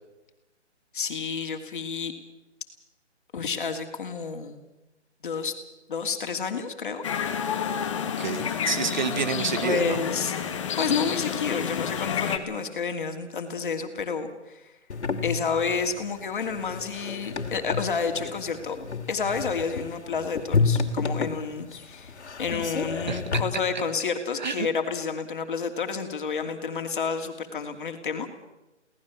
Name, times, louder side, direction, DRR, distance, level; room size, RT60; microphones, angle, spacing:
voice 1, 0.9-2.1 3.3-4.6 5.2-5.5 5.9-7.0 9.4-10.3 10.8-14.7 15.2-18.8 19.1-28.3, left 5 dB, 45° left, 5 dB, 2.8 m, -30 dB
sound 1, 7.0-12.4, left 7 dB, 25° left, 1.6 m, -29 dB
voice 2, 8.2-10.0 23.1-23.2 24.4-24.7, right 6 dB, 40° right, 11 dB, 1.5 m, -28 dB
sound 2, 14.9-23.4, left 4 dB, 70° left, 2.7 m, -30 dB
23.5 x 18.0 x 7.3 m, 1.0 s
hypercardioid pair, 165°, 36 cm